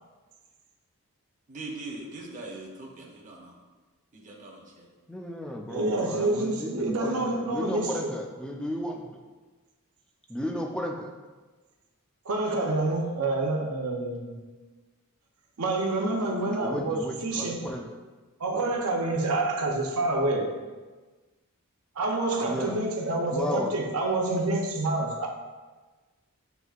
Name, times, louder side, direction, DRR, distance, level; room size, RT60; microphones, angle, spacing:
voice 1, 1.5-3.5 4.1-4.9, right 2 dB, 35° right, -2 dB, 0.7 m, -41 dB
voice 2, 5.1-9.2 10.3-11.1 16.6-17.9 18.5-18.6 22.4-22.8 23.3-23.7, left 1 dB, 5° left, 1 dB, 0.4 m, -34 dB
voice 3, 5.7-8.1 12.2-14.4 15.6-17.6 18.4-20.5 21.9-25.3, right 2 dB, 75° right, 1 dB, 0.7 m, -27 dB
7.8 x 2.7 x 2.4 m, 1.3 s
head